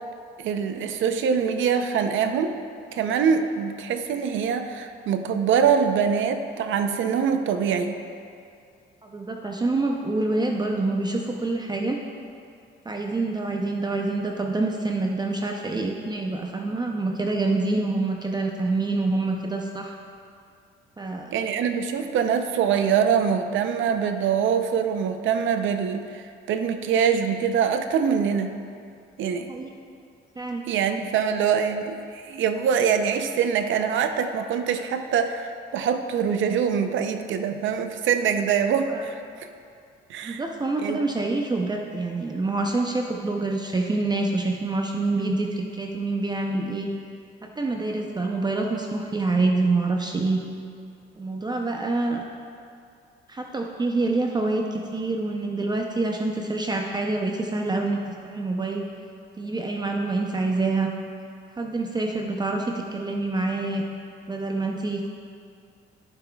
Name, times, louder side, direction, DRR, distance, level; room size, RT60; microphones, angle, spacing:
voice 1, 0.4-2.6 2.9-8.0 21.3-28.5 29.2-29.5 30.7-39.2 40.1-40.4 40.8-41.0, right 7 dB, 75° right, 7 dB, 0.6 m, -24 dB
voice 2, 9.0-12.0 12.9-20.0 21.0-21.3 29.5-29.7 30.4-30.6 38.9-39.1 40.2-46.9 47.4-50.4 51.2-52.2 53.3-58.0 58.2-58.8 59.4-60.9 61.6-63.8 64.3-65.1, right 2 dB, 20° right, 1 dB, 0.6 m, -26 dB
14.5 x 5.9 x 2.3 m, 2.4 s
cardioid pair, 90°, 20 cm